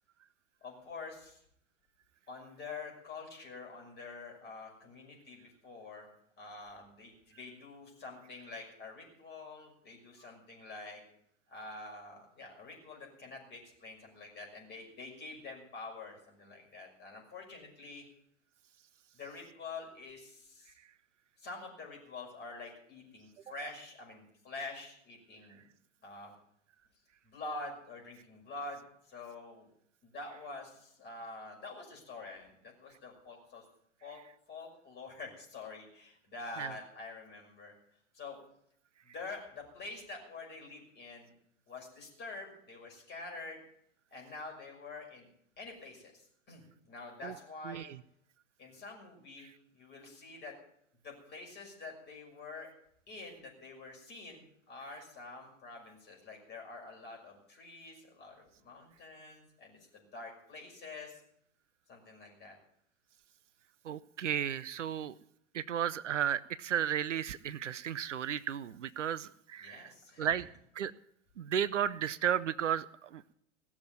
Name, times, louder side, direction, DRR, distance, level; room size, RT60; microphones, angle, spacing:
voice 1, 0.6-1.4 2.3-6.1 6.4-11.0 11.5-18.0 19.1-20.8 21.4-25.6 26.0-26.3 27.2-29.7 30.0-33.6 34.0-34.2 34.5-37.7 38.1-38.4 39.0-41.3 41.7-43.6 44.1-45.3 45.6-47.9 48.6-50.5 51.0-52.7 53.1-61.2 61.9-62.6 69.6-70.6, left 3 dB, 25° left, 0 dB, 6.0 m, -47 dB
voice 2, 63.9-65.1 65.5-69.9 70.2-70.5 70.8-70.9 71.4-72.9 73.1-73.3, right 9 dB, 70° right, 17 dB, 0.7 m, -33 dB
17.5 x 7.3 x 9.4 m, 0.72 s
figure-of-eight pair, 100°, 38 cm